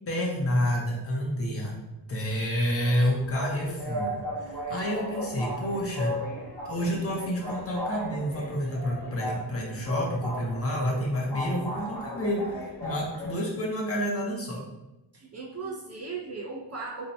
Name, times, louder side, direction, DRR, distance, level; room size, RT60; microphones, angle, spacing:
voice 1, 0.1-1.8 2.1-6.2 6.7-14.6, equal, 30° left, -2 dB, 0.6 m, -29 dB
sound 1, 2.9-13.3, left 1 dB, 50° left, 1.1 m, -36 dB
voice 2, 15.1-17.1, right 4 dB, 35° right, -3 dB, 0.4 m, -37 dB
2.7 x 2.1 x 4.0 m, 0.99 s
wide cardioid pair, 135°, 45 cm